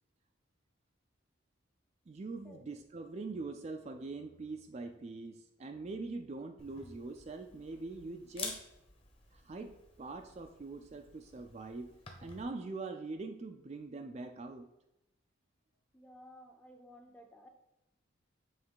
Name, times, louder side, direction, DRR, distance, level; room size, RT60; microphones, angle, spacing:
voice 1, 2.1-8.6 9.3-14.7, right 3 dB, 30° right, 5 dB, 0.3 m, -43 dB
Camera, 6.6-12.4, left 4 dB, 30° left, 1.0 m, -49 dB
voice 2, 15.9-17.5, equal, 5° left, 3 dB, 0.6 m, -55 dB
7.2 x 3.2 x 4.6 m, 0.91 s
head